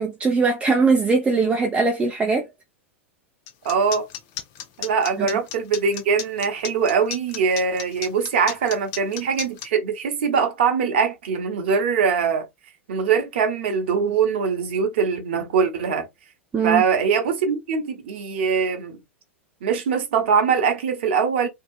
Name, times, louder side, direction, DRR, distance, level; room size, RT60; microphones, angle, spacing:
voice 1, 0.0-2.5 5.2-5.3 16.5-16.8, right 4 dB, 15° right, 0.5 m, -20 dB
sound 1, 3.5-9.7, left 10 dB, 40° left, 0.5 m, -33 dB
voice 2, 3.6-4.1 4.8-12.5 12.9-16.1 16.6-19.0 19.6-21.5, right 6 dB, 55° right, 0.8 m, -22 dB
2.7 x 2.3 x 2.3 m
figure-of-eight pair, 90°, 7 cm